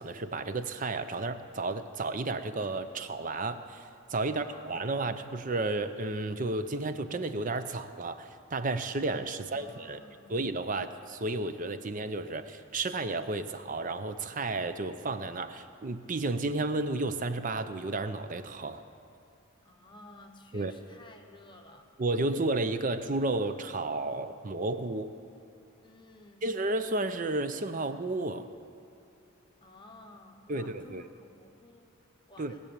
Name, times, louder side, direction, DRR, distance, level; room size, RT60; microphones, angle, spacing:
voice 1, 0.0-10.0 10.3-18.8 20.5-20.7 22.0-25.2 26.4-28.5 30.5-31.0 32.4-32.5, right 2 dB, 35° right, 10 dB, 0.6 m, -32 dB
voice 2, 4.3-5.0 9.3-10.4 19.6-21.9 25.8-26.6 29.6-32.6, left 2 dB, 20° left, 2 dB, 0.9 m, -54 dB
19.5 x 7.0 x 8.7 m, 2.6 s
head